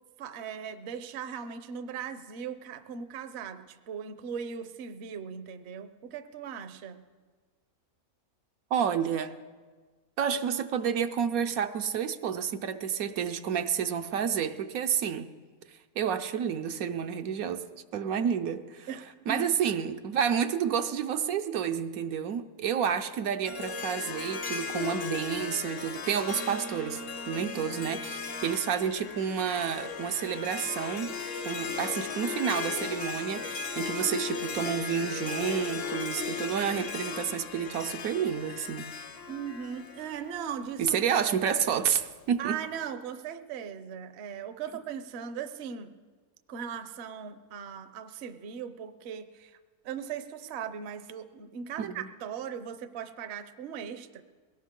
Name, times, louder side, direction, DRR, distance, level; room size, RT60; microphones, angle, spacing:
voice 1, 0.2-7.1 18.9-19.4 39.3-40.9 42.4-45.9 46.5-49.6 49.8-54.2, right 7 dB, 55° right, 10 dB, 0.9 m, -38 dB
voice 2, 8.7-9.3 10.2-15.3 16.0-17.6 17.9-18.9 19.3-27.0 27.3-31.1 31.4-38.9 40.8-42.6 51.8-52.1, right 8 dB, 75° right, 8 dB, 1.1 m, -30 dB
Harp, 23.4-40.7, left 5 dB, 50° left, 0.9 m, -36 dB
21.0 x 17.5 x 3.7 m, 1.4 s
omnidirectional pair, 1.6 m